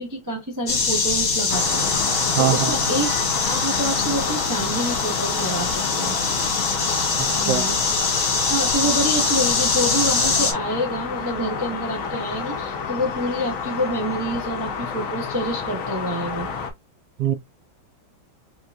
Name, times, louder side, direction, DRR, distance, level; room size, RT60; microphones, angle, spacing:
voice 1, 0.0-3.1 3.4-6.2 7.4-7.8 8.4-16.5, equal, 30° right, 0.3 m, -27 dB
sound 1, 0.7-10.5, left 4 dB, 50° left, 1.4 m, -23 dB
sound 2, 1.5-16.7, left 6 dB, 65° left, 0.8 m, -29 dB
voice 2, 2.4-2.8 7.2-7.7 17.2-17.3, right 10 dB, 75° right, 0.9 m, -23 dB
4.3 x 2.6 x 2.2 m
omnidirectional pair, 2.2 m